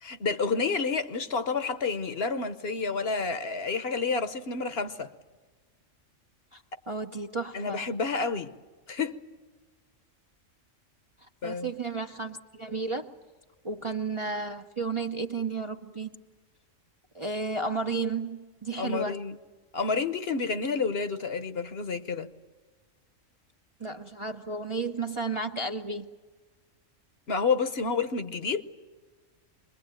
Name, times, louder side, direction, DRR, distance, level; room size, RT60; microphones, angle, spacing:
voice 1, 0.0-5.1 7.5-8.5 8.9-9.2 11.4-11.7 18.7-19.4 19.7-22.3 27.3-28.6, left 4 dB, 55° left, 1.2 m, -29 dB
voice 2, 6.9-7.8 11.4-13.1 13.6-16.1 17.1-19.2 23.8-26.1, right 3 dB, 30° right, 0.7 m, -32 dB
25.0 x 21.5 x 8.9 m
omnidirectional pair, 1.3 m